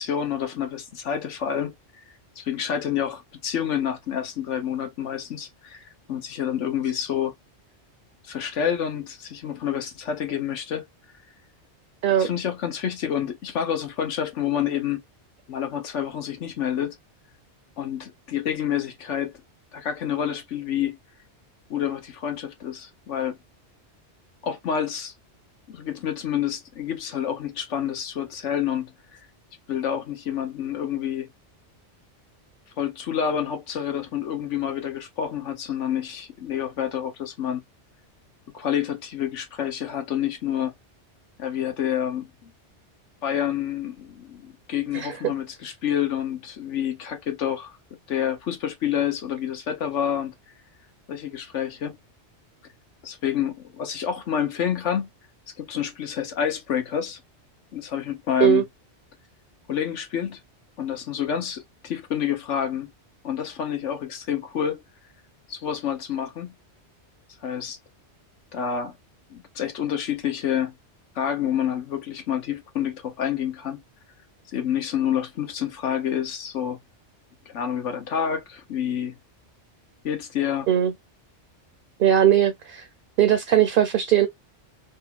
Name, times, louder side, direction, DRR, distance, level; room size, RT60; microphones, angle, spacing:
voice 1, 0.0-1.7 2.4-7.3 8.2-10.8 12.1-15.0 15.5-17.0 17.8-19.3 19.7-21.0 21.7-23.4 24.4-25.1 25.7-28.9 29.7-31.3 32.8-37.6 38.5-40.7 41.4-42.5 43.2-47.8 48.1-50.3 51.1-52.0 53.0-55.1 55.6-57.2 57.7-58.6 59.7-60.4 60.8-62.9 63.2-64.8 65.5-66.5 67.4-67.8 68.5-69.0 69.3-70.7 71.1-73.8 74.5-76.8 77.5-79.1 80.0-80.7, left 9 dB, 85° left, 1.3 m, -28 dB
voice 2, 82.0-82.9 83.2-84.3, right 10 dB, 55° right, 0.8 m, -19 dB
3.4 x 2.3 x 2.8 m
omnidirectional pair, 1.2 m